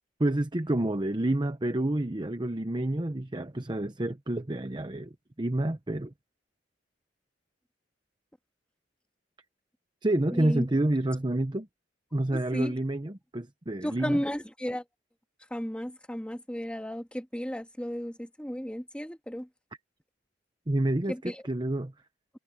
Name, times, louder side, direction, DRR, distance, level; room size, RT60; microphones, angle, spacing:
voice 1, 0.2-6.1 10.0-11.7 12.1-14.2 20.7-21.9, right 1 dB, 25° right, 0.9 m, -29 dB
voice 2, 10.3-10.7 12.3-12.7 13.8-14.8 15.5-19.5 21.1-21.4, equal, 5° left, 1.8 m, -34 dB
head